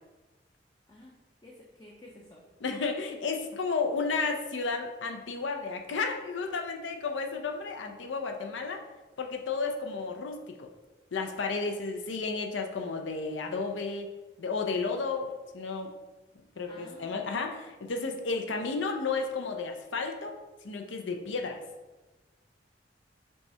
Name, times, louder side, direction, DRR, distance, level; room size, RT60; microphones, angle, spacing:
voice 1, 1.4-2.4 16.7-17.2, left 1 dB, 20° left, -2 dB, 0.5 m, -52 dB
voice 2, 2.6-8.8 9.2-10.7 11.1-15.9 16.6-20.4 20.6-21.6, left 4 dB, 90° left, 4 dB, 0.6 m, -32 dB
5.3 x 2.4 x 4.2 m, 1.1 s
head